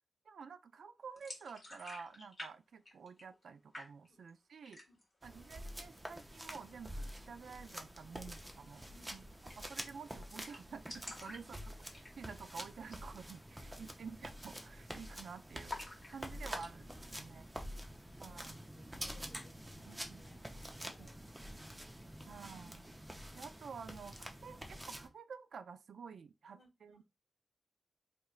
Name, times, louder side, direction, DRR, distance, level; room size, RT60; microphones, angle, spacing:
voice 1, 0.3-4.8 5.2-8.8 9.1-11.6 11.9-17.5 18.2-18.6 19.8-20.2 20.9-21.1 22.3-22.9 23.3-27.0, right 6 dB, 90° right, 0.3 m, -51 dB
sound 1, 1.2-2.5 2.8-3.5 3.7-4.3 4.6-5.2 5.5-5.6 5.9-6.6 8.3-8.4 8.7-8.8 9.0-9.1 9.5-9.8 10.1-10.2 10.4-12.4 12.8-13.1 13.4-13.5 14.1-14.3 14.6-15.2 15.7-16.7, left 2 dB, 25° left, 1.6 m, -50 dB
sound 2, 5.2-25.1, equal, 10° right, 0.5 m, -48 dB
voice 2, 8.5-9.4 11.2-11.4 13.6-13.9 17.4-18.4 18.7-22.4 26.5-27.0, left 3 dB, 55° left, 1.6 m, -68 dB
4.3 x 2.9 x 2.4 m
wide cardioid pair, 125°, 0 cm